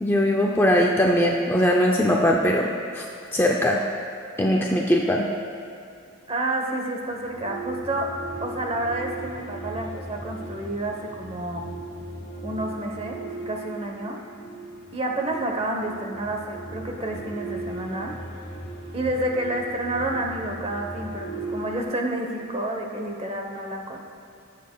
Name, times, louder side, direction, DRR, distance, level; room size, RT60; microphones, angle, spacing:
voice 1, 0.0-2.7 2.9-3.1 3.3-3.8 4.4-5.3, equal, 10° left, -1 dB, 0.4 m, -20 dB
voice 2, 6.3-8.1 8.4-11.7 12.4-14.2 14.9-18.1 18.9-24.0, right 1 dB, 25° right, 2 dB, 0.9 m, -29 dB
sound 1, 7.1-21.8, right 2 dB, 50° left, 1.3 m, -37 dB
18.5 x 7.3 x 2.3 m, 2.6 s
head